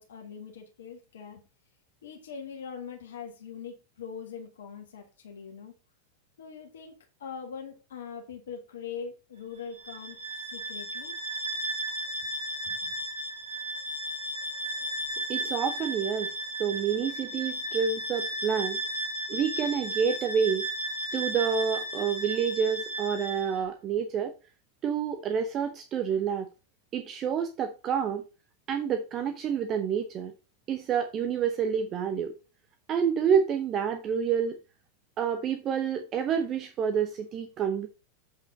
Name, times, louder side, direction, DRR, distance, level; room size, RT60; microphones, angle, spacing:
voice 1, 0.0-1.4 2.0-5.7 6.4-11.1 12.6-12.9, left 6 dB, 60° left, 1.6 m, -42 dB
Bowed string instrument, 9.7-23.6, right 1 dB, 75° right, 3.6 m, -34 dB
voice 2, 15.3-16.3 16.6-18.8 19.3-20.7 21.1-24.3 24.8-26.5 26.9-28.2 28.7-30.3 30.7-32.3 32.9-34.6 35.2-37.9, right 7 dB, 30° right, 0.8 m, -28 dB
7.6 x 5.8 x 4.0 m
figure-of-eight pair, 90°, 0 cm